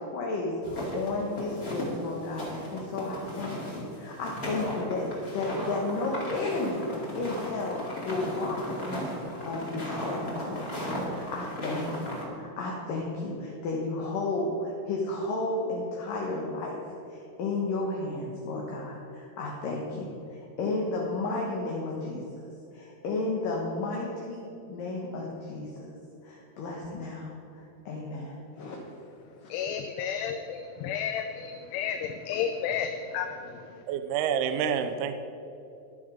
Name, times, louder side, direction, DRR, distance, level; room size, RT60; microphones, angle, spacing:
voice 1, 0.0-6.8 7.2-16.8 17.1-22.2 22.7-25.9 26.2-28.8 29.5-29.6, left 2 dB, 65° left, -2 dB, 2.7 m, -33 dB
sound 1, 0.6-12.3, equal, 25° left, 2.2 m, -36 dB
voice 2, 29.5-33.6, left 8 dB, 85° left, 6 dB, 2.8 m, -32 dB
voice 3, 33.9-35.2, right 8 dB, 80° right, 8 dB, 2.6 m, -28 dB
12.5 x 11.0 x 5.0 m, 2.9 s
omnidirectional pair, 4.7 m